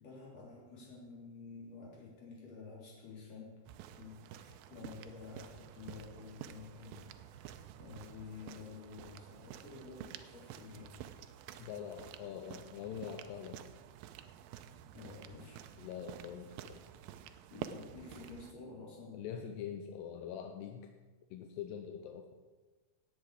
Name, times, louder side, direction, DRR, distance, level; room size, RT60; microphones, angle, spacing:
voice 1, 0.0-11.0 14.9-15.7 17.5-19.7, left 4 dB, 40° left, -4 dB, 4.0 m, -51 dB
sound 1, 3.6-18.5, right 10 dB, 85° right, 2.1 m, -50 dB
voice 2, 11.6-13.6 15.8-16.8 19.1-20.9 21.3-22.3, left 8 dB, 85° left, 5 dB, 2.8 m, -44 dB
18.0 x 8.0 x 4.9 m, 1.3 s
omnidirectional pair, 4.8 m